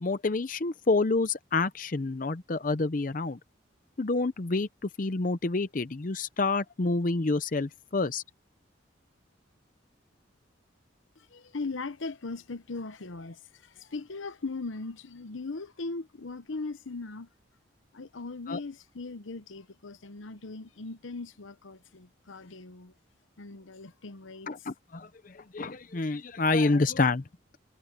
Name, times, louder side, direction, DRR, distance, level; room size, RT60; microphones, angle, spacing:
voice 1, 0.0-3.4 4.0-8.2 18.5-18.6 24.5-27.2, left 3 dB, 45° left, 0.6 m, -28 dB
voice 2, 11.2-17.3 17.9-22.9 23.4-24.5, left 3 dB, 85° left, 0.9 m, -39 dB
head